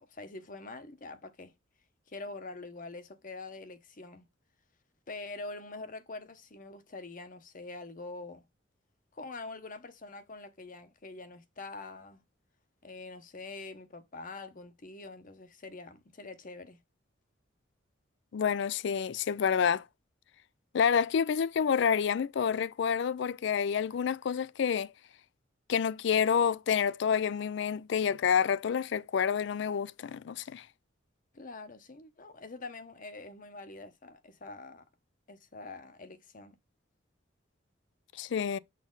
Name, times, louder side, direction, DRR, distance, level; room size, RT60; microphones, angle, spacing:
voice 1, 0.0-1.5 2.1-4.3 5.1-8.4 9.1-12.2 12.8-16.8 31.3-34.8 35.3-36.6, left 3 dB, 45° left, 0.9 m, -45 dB
voice 2, 18.3-19.8 20.7-24.9 25.7-30.6 38.2-38.6, left 7 dB, 65° left, 0.4 m, -28 dB
7.3 x 4.2 x 3.7 m
head